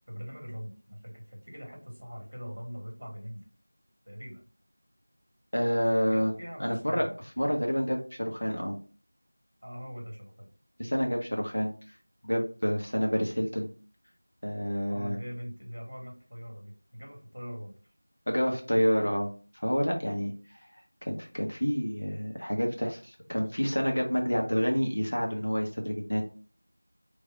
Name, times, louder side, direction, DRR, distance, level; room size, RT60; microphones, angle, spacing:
voice 1, 0.1-3.4 4.0-4.4 6.0-7.1 9.6-10.5 14.9-17.7, equal, 50° right, 1 dB, 1.4 m, -42 dB
voice 2, 5.5-6.3 6.6-8.7 10.8-11.7 12.2-13.7 14.4-15.2 18.3-19.3 19.5-20.3 21.0-26.2, equal, 35° left, 1 dB, 0.6 m, -28 dB
3.3 x 2.6 x 3.4 m, 0.39 s
figure-of-eight pair, 180°, 0 cm